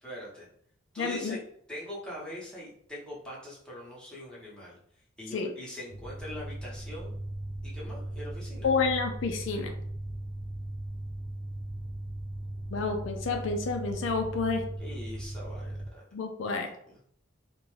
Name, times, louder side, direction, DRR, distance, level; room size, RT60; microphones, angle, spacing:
voice 1, 0.0-0.5 0.9-1.4 1.7-4.8 5.2-7.1 7.6-8.7 14.8-16.0 16.8-17.0, left 1 dB, 5° left, -7 dB, 0.9 m, -42 dB
voice 2, 1.0-1.4 5.3-5.5 8.6-9.7 12.7-14.6 16.1-16.7, left 4 dB, 75° left, 4 dB, 0.4 m, -29 dB
sound 1, 5.9-15.9, right 1 dB, 30° right, 0.3 m, -38 dB
2.5 x 2.2 x 3.1 m, 0.66 s
head